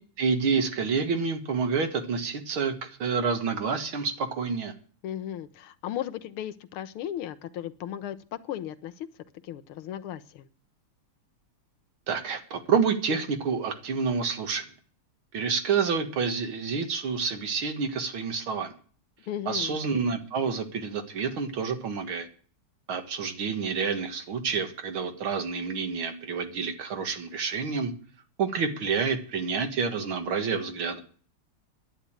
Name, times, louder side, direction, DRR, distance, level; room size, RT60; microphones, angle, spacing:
voice 1, 0.2-4.7 12.1-14.7 15.3-18.7 19.5-22.3 22.9-27.9 28.4-31.0, right 5 dB, 70° right, 7 dB, 2.4 m, -28 dB
voice 2, 5.0-9.1 9.4-10.5 19.3-19.8, left 11 dB, 80° left, 12 dB, 1.7 m, -36 dB
10.5 x 9.8 x 8.8 m, 0.43 s
omnidirectional pair, 2.4 m